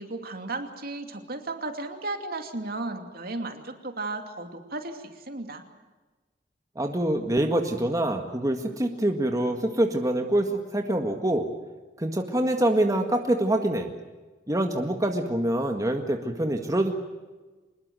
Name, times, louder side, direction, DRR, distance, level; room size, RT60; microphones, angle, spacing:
voice 1, 0.0-5.6, right 2 dB, 55° right, 6 dB, 2.7 m, -34 dB
voice 2, 6.8-11.5 12.0-13.9 14.5-16.9, right 1 dB, 20° right, 4 dB, 1.8 m, -25 dB
25.0 x 21.0 x 7.8 m, 1.2 s
head